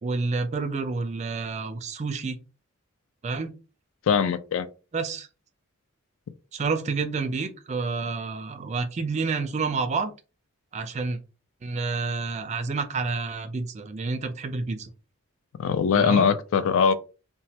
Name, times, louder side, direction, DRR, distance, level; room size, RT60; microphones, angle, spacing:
voice 1, 0.0-2.4 3.2-3.5 4.9-5.3 6.5-10.1 10.7-11.2 11.6-14.9 15.9-16.3, right 4 dB, 30° right, 0.4 m, -29 dB
voice 2, 4.1-4.7 15.6-16.9, left 6 dB, 70° left, 0.3 m, -21 dB
3.1 x 2.2 x 2.8 m
head